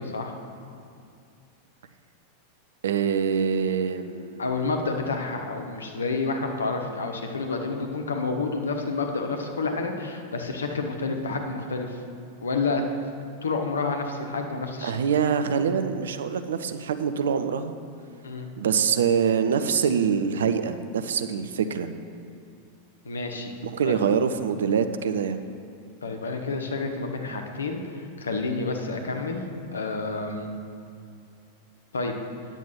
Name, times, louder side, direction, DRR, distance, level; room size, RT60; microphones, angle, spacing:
voice 1, 2.8-4.7 14.8-17.7 18.6-21.9 23.6-25.4, right 7 dB, 65° right, 9 dB, 0.6 m, -25 dB
voice 2, 4.4-12.0 12.4-12.8 13.4-14.9 18.2-18.5 23.0-23.5 23.8-24.0 26.0-27.8 28.2-29.4 29.7-30.5 31.9-32.1, left 3 dB, 70° left, 4 dB, 1.0 m, -29 dB
9.5 x 7.2 x 5.7 m, 2.4 s
figure-of-eight pair, 90°, 0 cm